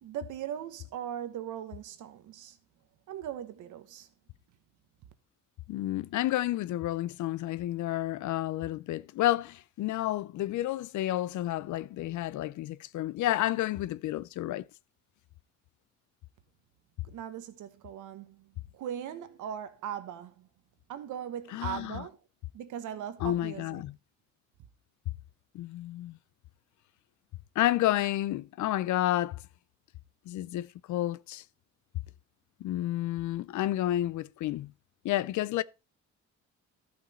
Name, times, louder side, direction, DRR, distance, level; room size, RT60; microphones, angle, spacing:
voice 1, 0.0-2.6 3.1-4.1 17.0-20.5 20.9-22.2 22.5-23.8, right 10 dB, 85° right, 1.3 m, -39 dB
voice 2, 5.7-14.7 21.5-22.0 23.2-23.9 25.5-26.2 27.6-29.4 30.3-31.4 32.6-34.7 35.0-35.6, left 14 dB, 75° left, 0.5 m, -30 dB
12.5 x 6.0 x 4.2 m
cardioid pair, 90°, 30 cm